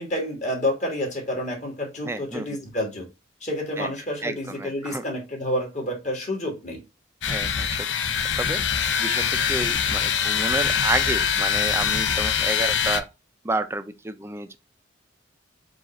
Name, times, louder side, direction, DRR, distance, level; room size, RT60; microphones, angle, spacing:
voice 1, 0.0-3.1 3.4-6.8, left 1 dB, 40° left, 1.5 m, -29 dB
voice 2, 2.0-2.5 3.8-3.9 4.2-5.0 7.3-7.9 8.4-13.1 13.4-14.6, right 2 dB, 15° right, 0.4 m, -30 dB
sound 1, 7.2-13.0, left 7 dB, 70° left, 0.5 m, -24 dB
4.9 x 2.4 x 4.1 m
head